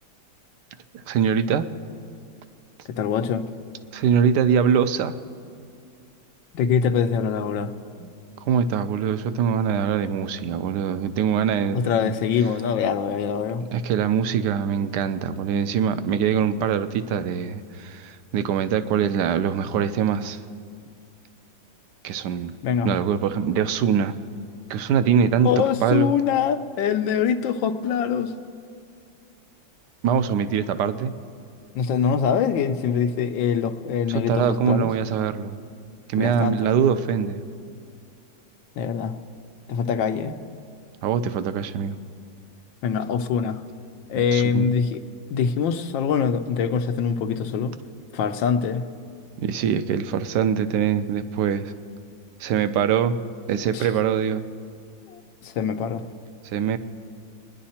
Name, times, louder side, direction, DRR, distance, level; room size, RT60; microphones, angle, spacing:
voice 1, 0.9-1.6 3.9-5.1 8.0-8.1 8.4-12.1 13.7-20.4 22.0-22.6 22.8-24.1 24.7-26.1 30.0-31.1 34.1-35.6 36.1-37.4 41.0-42.0 44.1-44.7 49.4-51.7 52.4-53.2 53.5-54.5 56.5-56.8, right 7 dB, 70° right, 12 dB, 1.2 m, -23 dB
voice 2, 2.9-3.4 6.5-7.7 11.7-13.6 22.6-22.9 25.4-28.3 31.7-34.9 36.2-36.5 38.8-39.2 39.7-40.4 42.8-43.6 44.1-45.0 45.3-47.7 48.1-48.8 53.7-53.9 55.1-56.0, left 7 dB, 80° left, 8 dB, 1.4 m, -24 dB
25.5 x 10.5 x 4.3 m, 2.4 s
omnidirectional pair, 2.1 m